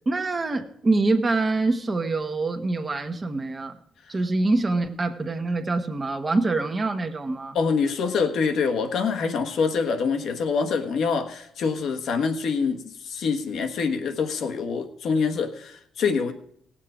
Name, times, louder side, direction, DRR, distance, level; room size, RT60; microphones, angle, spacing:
voice 1, 0.1-3.8 4.1-7.6, right 3 dB, 30° right, 5 dB, 1.1 m, -25 dB
voice 2, 7.5-16.3, left 5 dB, 70° left, 6 dB, 1.3 m, -25 dB
18.0 x 7.5 x 5.0 m, 0.68 s
cardioid pair, 90°, 0 cm